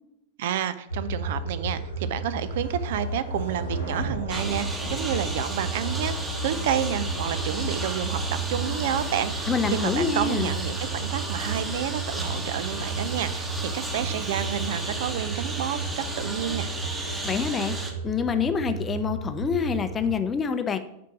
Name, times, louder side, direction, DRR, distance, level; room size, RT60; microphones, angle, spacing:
voice 1, 0.4-6.2 6.4-16.7, right 10 dB, 55° right, 14 dB, 0.4 m, -30 dB
sound 1, 0.9-20.2, right 3 dB, 85° left, 1.0 m, -33 dB
sound 2, 1.5-6.0, equal, 90° right, 2.0 m, -40 dB
Engine, 4.3-17.9, right 2 dB, 10° right, 1.1 m, -34 dB
voice 2, 9.5-10.5 17.2-20.8, left 6 dB, 20° left, 9 dB, 0.6 m, -26 dB
5.9 x 4.5 x 5.7 m, 0.79 s
figure-of-eight pair, 90°, 0 cm